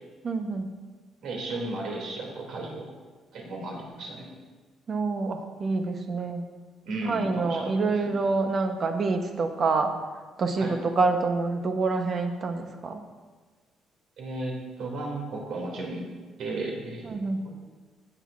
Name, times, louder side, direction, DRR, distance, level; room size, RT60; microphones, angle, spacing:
voice 1, 0.2-0.7 4.9-6.5 7.1-9.9 10.4-13.0 17.0-17.5, right 3 dB, 35° right, 5 dB, 0.8 m, -27 dB
voice 2, 1.2-2.9 3.3-4.3 6.9-8.2 10.6-10.7 14.2-16.0 16.4-17.2 17.4-17.5, right 2 dB, 70° right, -1 dB, 2.5 m, -34 dB
16.5 x 7.8 x 2.5 m, 1.4 s
cardioid pair, 165°, 0 cm